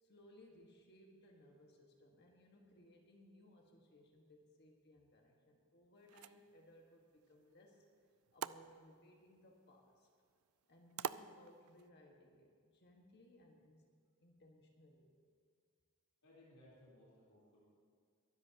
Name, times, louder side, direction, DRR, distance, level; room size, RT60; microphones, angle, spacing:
voice 1, 0.0-7.8 8.3-10.1 10.7-13.8 14.2-15.1, left 1 dB, 45° left, 1 dB, 1.5 m, -64 dB
sound 1, 6.0-11.9, right 9 dB, 75° right, 0.4 m, -50 dB
voice 2, 16.2-17.6, left 1 dB, 85° left, -7 dB, 3.7 m, -63 dB
22.5 x 13.0 x 2.9 m, 2.1 s
head